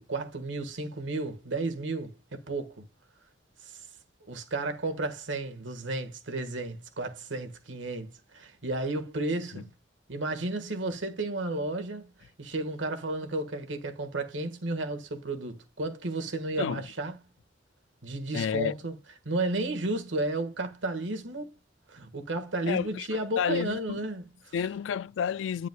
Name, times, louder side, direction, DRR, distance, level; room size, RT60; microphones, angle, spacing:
voice 1, 0.0-2.8 3.6-3.8 4.3-9.7 10.1-12.1 12.4-17.1 18.0-18.9 19.2-21.6 21.9-24.5, right 2 dB, 85° right, 1.5 m, -33 dB
voice 2, 18.3-18.8 22.7-24.0 24.5-25.7, left 7 dB, 85° left, 0.3 m, -31 dB
9.4 x 8.2 x 2.2 m
head